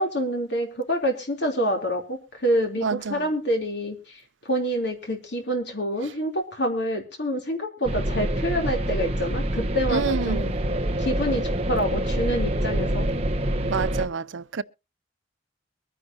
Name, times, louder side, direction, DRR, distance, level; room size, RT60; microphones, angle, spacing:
voice 1, 0.0-2.8 3.1-3.9 4.4-10.5 11.0-13.1, equal, 65° left, 3.4 m, -27 dB
voice 2, 2.8-3.3 9.9-10.5 13.7-14.6, right 5 dB, 80° right, 0.5 m, -28 dB
sound 1, 7.9-14.1, right 1 dB, 30° right, 1.0 m, -26 dB
23.5 x 9.9 x 2.8 m
head